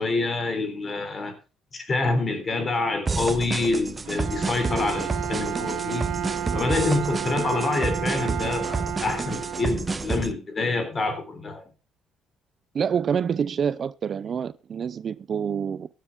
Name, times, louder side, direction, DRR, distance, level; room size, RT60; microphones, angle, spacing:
voice 1, 0.0-1.4 1.7-6.1 6.5-11.6, left 3 dB, 30° left, 3.7 m, -27 dB
sound 1, 3.1-10.3, right 4 dB, 25° right, 0.9 m, -30 dB
Bowed string instrument, 4.0-10.2, right 9 dB, 75° right, 2.3 m, -32 dB
voice 2, 12.7-15.9, right 7 dB, 45° right, 0.5 m, -27 dB
15.5 x 10.0 x 3.6 m
cardioid pair, 110°, 0 cm